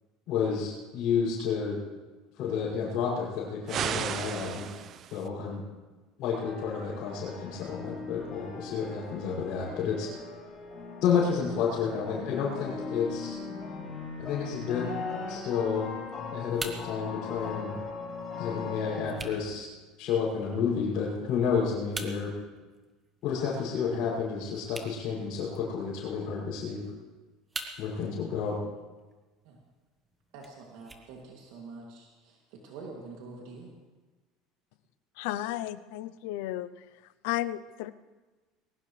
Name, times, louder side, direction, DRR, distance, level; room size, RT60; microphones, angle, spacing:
voice 1, 0.3-1.8 2.4-4.7 5.1-5.6 6.2-10.1 11.0-13.4 14.2-14.9 15.3-15.9 16.3-17.7 18.4-19.7 20.0-22.3 23.2-26.8 27.8-28.6, left 6 dB, 50° left, -8 dB, 6.2 m, -30 dB
sound 1, 3.7-5.3, right 9 dB, 35° right, 0.6 m, -34 dB
sound 2, 6.3-19.2, left 4 dB, 25° left, 4.6 m, -39 dB
sound 3, 15.7-31.7, right 2 dB, 15° right, 1.4 m, -47 dB
voice 2, 30.3-33.7, right 3 dB, 70° right, -1 dB, 2.6 m, -46 dB
voice 3, 35.2-36.8 37.2-37.9, left 14 dB, 80° left, 14 dB, 0.6 m, -33 dB
21.0 x 18.5 x 3.3 m, 1.2 s
cardioid pair, 155°, 0 cm